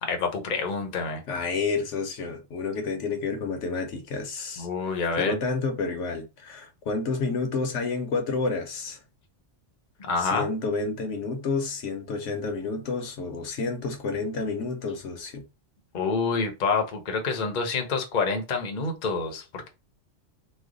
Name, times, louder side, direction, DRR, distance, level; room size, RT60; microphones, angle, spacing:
voice 1, 0.0-1.2 4.6-5.4 10.0-10.5 15.9-19.7, left 4 dB, 45° left, 0.8 m, -27 dB
voice 2, 1.3-4.7 5.2-9.0 10.2-15.4, left 4 dB, 75° left, 1.1 m, -30 dB
3.2 x 2.1 x 3.7 m
omnidirectional pair, 1.3 m